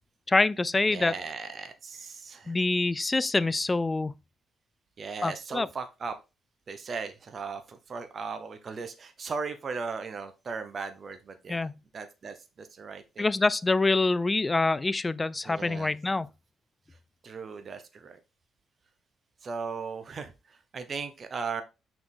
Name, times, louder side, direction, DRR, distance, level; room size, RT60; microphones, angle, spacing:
voice 1, 0.3-1.1 2.5-4.1 5.2-5.7 11.5-11.7 13.2-16.3, left 3 dB, 20° left, 0.3 m, -25 dB
voice 2, 0.9-2.6 5.0-6.2 6.7-11.7 11.9-13.3 15.4-16.0 17.2-18.2 19.4-21.6, right 5 dB, 45° right, 0.9 m, -37 dB
6.0 x 4.6 x 3.8 m
cardioid pair, 95°, 0 cm